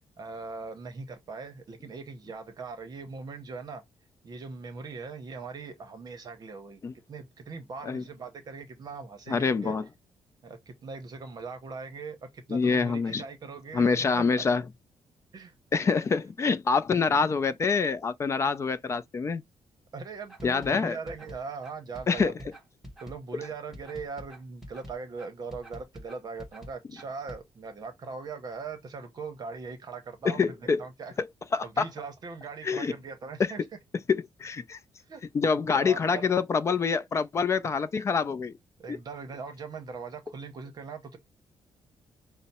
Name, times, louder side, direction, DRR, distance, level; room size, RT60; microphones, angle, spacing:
voice 1, 0.2-3.8 4.2-6.8 7.1-9.7 10.4-14.4 15.3-15.5 19.9-22.3 23.0-31.1 31.6-33.6 35.0-35.2 35.7-36.3 38.8-41.2, right 4 dB, 40° right, 0.8 m, -40 dB
voice 2, 9.3-9.8 12.5-13.2 13.7-14.6 15.7-19.4 20.4-21.0 22.1-22.3 30.2-30.8 31.2-31.3 31.5-31.8 32.6-32.9 33.4-33.5 34.1-34.8 35.3-38.5, left 5 dB, 30° left, 0.4 m, -26 dB
sound 1, 20.3-27.4, equal, 5° right, 1.0 m, -46 dB
5.5 x 2.0 x 4.1 m
cardioid pair, 155°, 10 cm